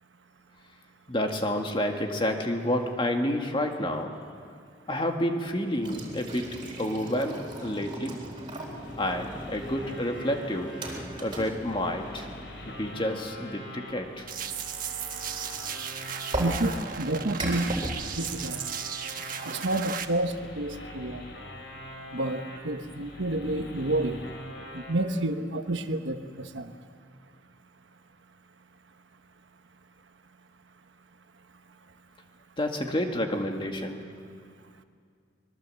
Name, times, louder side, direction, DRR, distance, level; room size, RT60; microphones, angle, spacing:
voice 1, 1.1-4.2 4.9-8.2 9.0-10.7 11.2-12.3 12.7-14.3 32.6-34.0, left 1 dB, 25° left, 3 dB, 1.9 m, -29 dB
sound 1, 5.8-13.5 16.3-17.9, right 1 dB, 25° right, 3.7 m, -37 dB
sound 2, 8.7-25.0, left 1 dB, 70° left, 4.5 m, -44 dB
sound 3, 14.3-20.0, right 8 dB, 50° right, 1.2 m, -36 dB
voice 2, 16.4-17.7 18.2-18.6 19.5-21.2 22.1-24.2 24.7-26.7, right 1 dB, 75° right, 8 dB, 1.2 m, -29 dB
24.5 x 22.0 x 7.7 m, 2.2 s
head